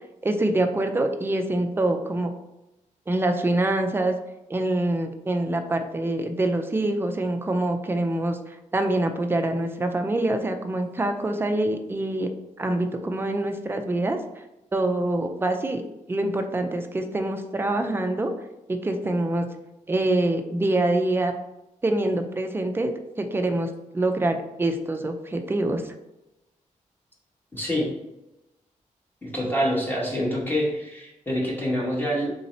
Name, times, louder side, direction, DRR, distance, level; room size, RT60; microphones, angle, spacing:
voice 1, 0.2-2.3 3.1-4.2 4.5-12.3 12.6-14.2 14.7-15.8 16.1-18.3 18.7-19.5 19.9-21.3 21.8-22.9 23.2-25.9, right 1 dB, 15° right, 6 dB, 0.4 m, -25 dB
voice 2, 27.5-27.9 29.2-32.3, equal, 15° left, -4 dB, 1.0 m, -26 dB
3.8 x 2.7 x 4.2 m, 0.93 s
wide cardioid pair, 160°, 13 cm